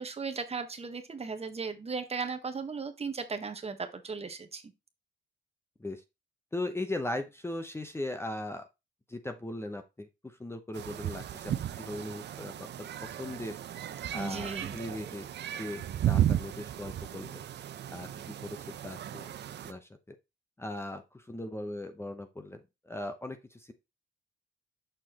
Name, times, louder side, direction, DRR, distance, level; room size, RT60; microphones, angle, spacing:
voice 1, 0.0-4.6 14.1-14.7, right 4 dB, 30° right, 1.1 m, -36 dB
voice 2, 6.5-8.7 9.1-13.6 14.1-15.3 15.6-17.4 17.9-19.3 19.6-20.1 20.6-23.7, left 1 dB, 10° left, 0.8 m, -39 dB
sound 1, 10.7-19.7, right 11 dB, 60° right, 0.7 m, -34 dB
6.7 x 5.9 x 2.9 m
cardioid pair, 90°, 20 cm